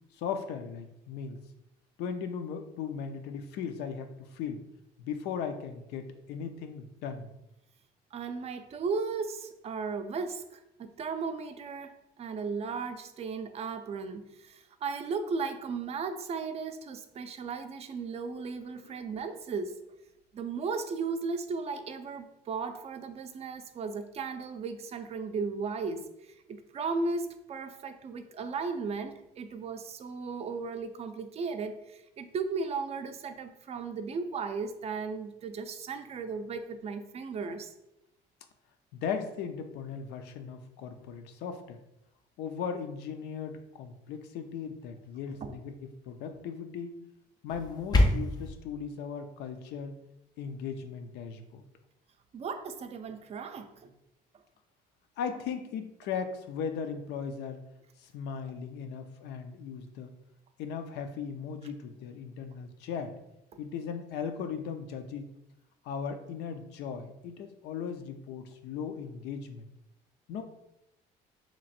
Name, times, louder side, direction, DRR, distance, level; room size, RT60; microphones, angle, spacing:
voice 1, 0.1-1.4 2.0-4.6 5.0-7.3 18.8-19.0 38.9-41.8 42.4-45.7 46.1-47.0 47.4-49.9 50.4-51.6 55.2-57.6 58.0-60.2 60.6-63.1 63.6-65.3 65.8-69.7 70.3-70.4, left 6 dB, 80° left, 7 dB, 0.5 m, -37 dB
voice 2, 8.1-19.8 20.3-37.7 45.3-45.6 52.3-53.9, right 4 dB, 40° right, 8 dB, 0.4 m, -36 dB
sound 1, 47.5-48.5, left 1 dB, 25° left, 0.5 m, -25 dB
2.9 x 2.5 x 4.1 m, 0.87 s
cardioid pair, 110°, 17 cm